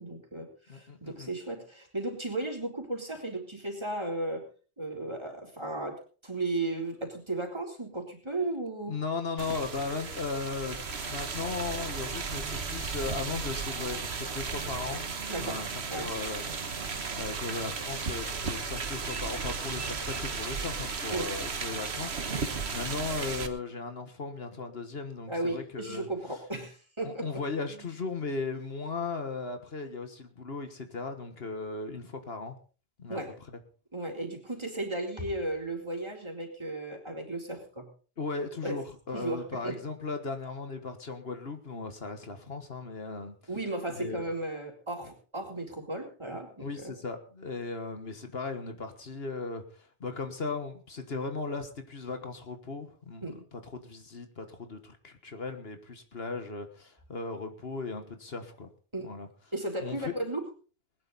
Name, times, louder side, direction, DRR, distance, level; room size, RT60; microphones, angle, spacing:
voice 1, 0.0-4.4 4.8-9.0 15.3-15.6 15.9-16.1 21.1-21.3 25.3-27.4 27.7-27.9 33.1-33.3 33.9-37.9 38.6-38.8 39.1-39.8 43.5-46.9 53.2-53.4 58.9-59.1 59.5-60.4, right 2 dB, 25° right, 1 dB, 3.8 m, -35 dB
voice 2, 0.7-1.3 8.9-15.0 15.4-16.4 17.2-26.1 27.0-32.6 33.0-33.2 38.2-43.3 44.0-44.2 46.6-58.7 59.0-59.3 59.8-60.1, left 4 dB, 60° left, 7 dB, 1.7 m, -37 dB
sound 1, 9.4-23.5, right 5 dB, 70° right, 1.6 m, -35 dB
20.5 x 11.0 x 4.1 m, 0.39 s
omnidirectional pair, 1.1 m